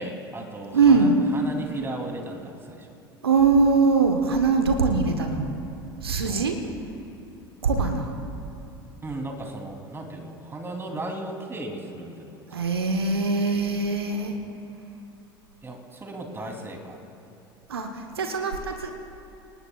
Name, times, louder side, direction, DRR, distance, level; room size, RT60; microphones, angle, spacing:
voice 1, 0.0-2.9 6.0-6.5 9.0-12.5 15.6-17.0, right 2 dB, 20° right, 2 dB, 3.2 m, -36 dB
voice 2, 0.7-1.2 3.2-5.5 6.0-6.6 7.6-8.2 12.5-14.4 17.7-18.9, right 4 dB, 85° right, 5 dB, 1.2 m, -22 dB
27.5 x 19.5 x 2.4 m, 2.9 s
figure-of-eight pair, 75°, 13 cm